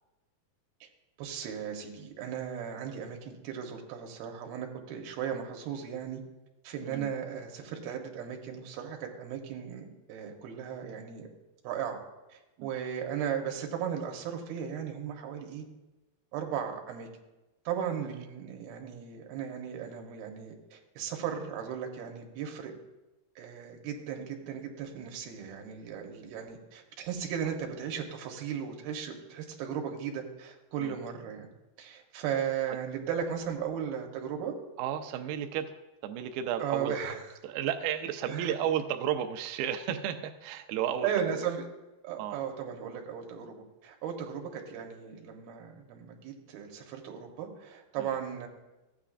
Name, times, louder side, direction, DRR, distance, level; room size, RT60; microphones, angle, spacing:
voice 1, 1.2-6.2 6.6-11.3 11.6-12.0 12.3-15.6 16.3-17.1 17.7-22.7 23.4-31.5 31.8-34.5 36.6-37.2 38.3-38.6 41.0-41.7 42.0-48.5, right 8 dB, 75° right, 3 dB, 2.8 m, -36 dB
voice 2, 34.8-36.9 37.4-41.4 42.2-42.4 48.0-48.2, right 9 dB, 90° right, 6 dB, 2.0 m, -33 dB
14.5 x 9.0 x 2.5 m, 1.0 s
omnidirectional pair, 4.8 m